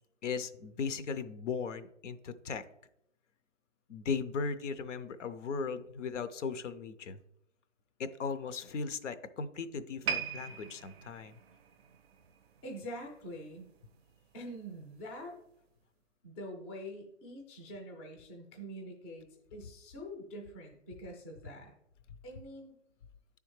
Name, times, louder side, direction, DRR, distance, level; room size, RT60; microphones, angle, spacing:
voice 1, 0.2-2.6 3.9-7.2 8.0-11.4, left 5 dB, 75° left, 12 dB, 0.6 m, -37 dB
sound 1, 10.0-13.3 13.6-13.9 14.6-14.7, right 7 dB, 55° right, 0.5 m, -40 dB
voice 2, 12.6-13.7 14.3-15.4 16.2-21.7 22.2-22.7, equal, 10° left, 2 dB, 0.4 m, -45 dB
9.6 x 3.4 x 3.1 m, 0.80 s
hypercardioid pair, 135°, 37 cm